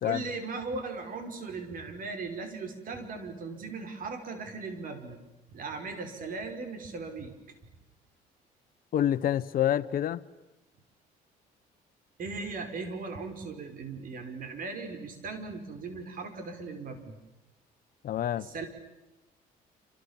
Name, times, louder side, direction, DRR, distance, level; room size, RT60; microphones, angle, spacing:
voice 1, 0.0-5.2 5.5-7.4 12.2-17.2 18.4-18.7, right 4 dB, 55° right, 6 dB, 5.2 m, -38 dB
voice 2, 8.9-10.2 18.0-18.5, left 11 dB, 60° left, 12 dB, 1.2 m, -27 dB
28.0 x 27.5 x 7.4 m, 1.0 s
cardioid pair, 110°, 17 cm